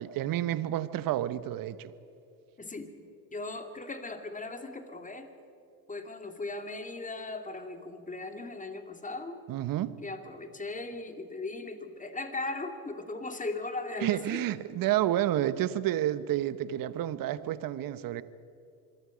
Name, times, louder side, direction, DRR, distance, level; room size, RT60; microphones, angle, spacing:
voice 1, 0.0-1.9 9.5-10.0 14.0-18.2, right 13 dB, 45° right, 1.2 m, -30 dB
voice 2, 2.6-2.9 3.3-5.3 5.9-9.4 10.0-14.4, left 2 dB, 15° left, 2.5 m, -38 dB
26.5 x 22.5 x 5.2 m
hypercardioid pair, 85°, 46 cm